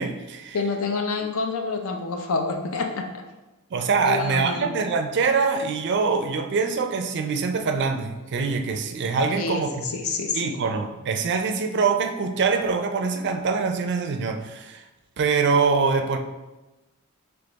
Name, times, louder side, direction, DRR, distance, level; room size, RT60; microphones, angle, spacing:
voice 1, 0.0-0.6 3.7-9.9 10.3-14.8 15.2-16.2, right 4 dB, 55° right, 6 dB, 0.4 m, -24 dB
voice 2, 0.5-3.2 4.0-4.7 9.3-10.6, left 4 dB, 70° left, 4 dB, 0.6 m, -28 dB
3.4 x 3.4 x 3.9 m, 1.1 s
head